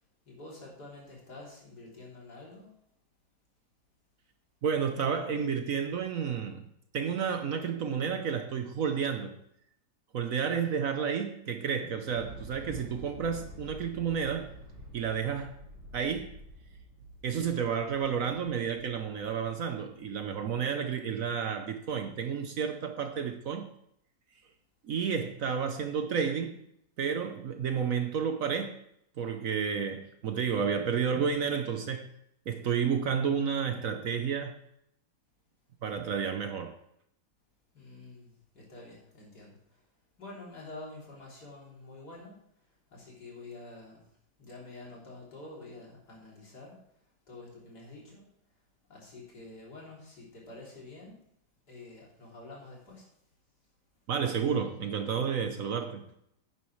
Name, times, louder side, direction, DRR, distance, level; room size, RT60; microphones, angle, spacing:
voice 1, 0.3-2.8 37.7-39.9 40.2-44.0 44.4-48.3 48.9-51.2 51.7-53.1, left 2 dB, 70° left, 3.7 m, -48 dB
voice 2, 4.6-6.6 6.9-9.4 10.1-14.5 14.9-15.5 15.9-16.3 17.2-23.7 24.8-26.6 27.0-28.8 29.2-32.1 32.5-34.6 35.8-36.8 54.1-56.0, right 7 dB, 60° right, 1.0 m, -31 dB
Thunder / Explosion, 12.0-20.2, equal, 85° right, 3.9 m, -48 dB
11.0 x 9.4 x 3.2 m
omnidirectional pair, 1.8 m